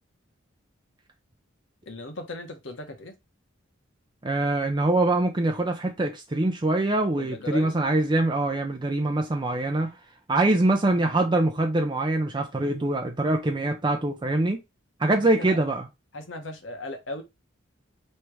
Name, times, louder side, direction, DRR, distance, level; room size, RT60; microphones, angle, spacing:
voice 1, 1.9-3.1 7.2-7.8 15.4-15.6 16.1-17.2, left 2 dB, 65° left, 1.1 m, -37 dB
voice 2, 4.2-10.0 10.3-14.6 15.0-15.9, right 2 dB, 25° right, 0.5 m, -24 dB
3.2 x 2.9 x 4.6 m
head